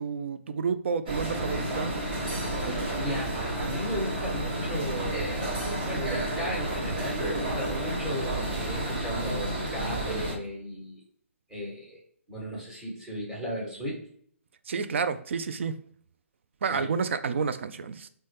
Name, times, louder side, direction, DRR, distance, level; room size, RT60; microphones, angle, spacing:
voice 1, 0.0-2.0 2.6-2.8 14.7-15.7 16.6-18.1, right 5 dB, 60° right, 11 dB, 0.3 m, -30 dB
sound 1, 1.1-10.4, right 1 dB, 45° right, 1.0 m, -31 dB
voice 2, 3.0-5.5 5.8-11.0 11.5-12.0 12.3-14.0 16.7-16.9, equal, 20° right, -5 dB, 1.1 m, -35 dB
4.0 x 2.2 x 3.2 m, 0.62 s
figure-of-eight pair, 135°, 7 cm